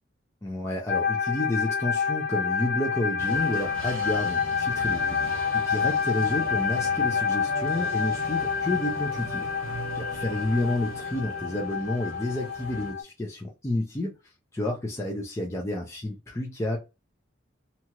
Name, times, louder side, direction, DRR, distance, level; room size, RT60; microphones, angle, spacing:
voice 1, 0.4-9.5 9.7-16.8, left 1 dB, 15° left, 0.4 m, -30 dB
sound 1, 0.9-13.0, left 6 dB, 50° left, 0.8 m, -28 dB
sound 2, 3.2-12.9, right 2 dB, 75° right, 0.8 m, -40 dB
2.8 x 2.3 x 2.8 m
head